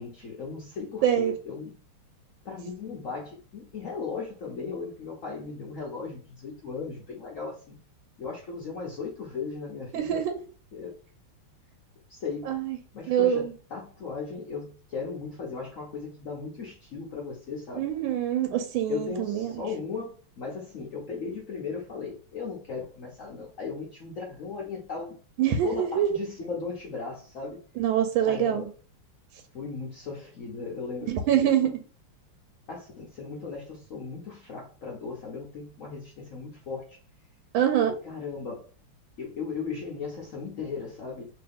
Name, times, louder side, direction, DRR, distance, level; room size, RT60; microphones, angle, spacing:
voice 1, 0.0-1.7 2.4-7.8 8.2-10.2 10.7-10.9 12.1-12.5 12.9-17.9 18.9-25.1 25.5-27.6 28.2-28.7 29.5-31.7 32.7-37.0 38.0-38.7 39.2-41.3, left 4 dB, 85° left, -3 dB, 0.7 m, -37 dB
voice 2, 1.0-1.3 9.9-10.4 12.5-12.8 13.1-13.5 17.8-19.6 25.4-26.2 27.8-28.7 31.1-31.7 37.5-38.0, right 10 dB, 75° right, 5 dB, 1.2 m, -25 dB
3.1 x 2.8 x 3.4 m, 0.38 s
omnidirectional pair, 2.4 m